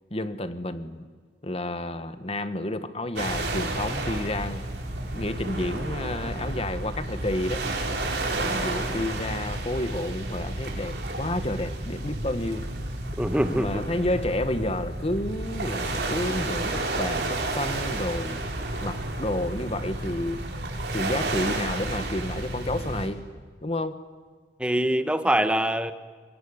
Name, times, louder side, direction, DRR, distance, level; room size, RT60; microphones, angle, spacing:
voice 1, 0.1-1.1 1.4-4.6 5.1-7.6 8.4-12.6 13.5-18.4 18.8-20.4 20.9-23.2 23.6-24.0, left 1 dB, 35° left, 11 dB, 1.5 m, -30 dB
sound 1, 3.2-23.1, right 2 dB, 65° right, 4.8 m, -31 dB
voice 2, 13.2-13.9 24.6-25.9, right 1 dB, 5° right, 10 dB, 1.2 m, -24 dB
25.5 x 21.5 x 9.8 m, 1.5 s
head